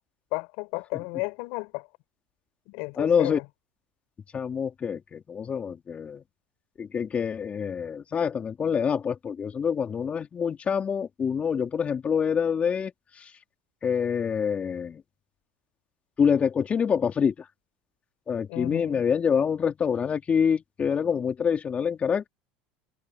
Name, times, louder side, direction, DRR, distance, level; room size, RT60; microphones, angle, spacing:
voice 1, 0.3-1.9 2.7-3.4 18.5-19.0, left 30 dB, 70° left, 5.8 m, -33 dB
voice 2, 3.0-3.4 4.3-6.2 6.8-12.9 13.8-15.0 16.2-17.3 18.3-22.3, left 7 dB, 30° left, 3.5 m, -26 dB
supercardioid pair, 100°, 4 cm